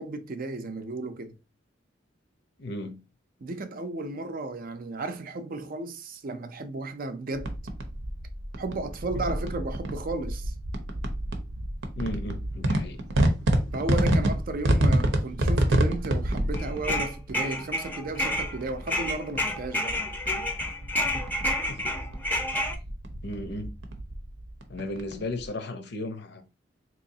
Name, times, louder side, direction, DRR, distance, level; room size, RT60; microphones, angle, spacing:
voice 1, 0.0-1.3 3.4-7.5 8.6-10.5 13.7-20.0, right 2 dB, 50° right, 0.5 m, -34 dB
voice 2, 2.6-3.0 9.1-9.2 12.0-13.0 21.1-21.2 21.7-21.8 23.2-23.7 24.7-26.4, left 2 dB, 65° left, 0.6 m, -35 dB
sound 1, 7.3-25.5, right 1 dB, 85° right, 0.7 m, -29 dB
sound 2, 16.5-18.6 18.9-22.8, left 1 dB, 10° left, 0.5 m, -29 dB
3.9 x 3.0 x 2.7 m
head